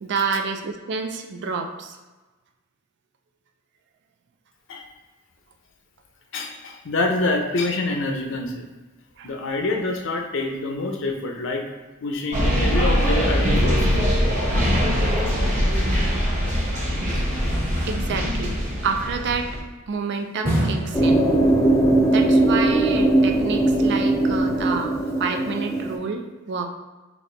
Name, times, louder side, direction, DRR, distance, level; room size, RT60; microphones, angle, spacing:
voice 1, 0.0-2.0 9.2-9.3 17.1-17.2 17.9-18.6 18.8-19.5 19.9-21.3 22.1-24.9 25.2-26.7, right 5 dB, 60° right, 4 dB, 0.4 m, -28 dB
voice 2, 6.3-8.7 9.2-11.6 12.0-13.9 14.8-14.9, left 2 dB, 65° left, 3 dB, 0.6 m, -26 dB
sound 1, 12.3-19.6, equal, 35° right, 0.9 m, -22 dB
sound 2, 17.5-19.2 20.5-22.0 22.2-22.3, right 1 dB, 10° right, 0.9 m, -29 dB
sound 3, 20.9-26.0, right 2 dB, 15° left, 0.6 m, -19 dB
4.2 x 2.7 x 3.3 m, 1.2 s
head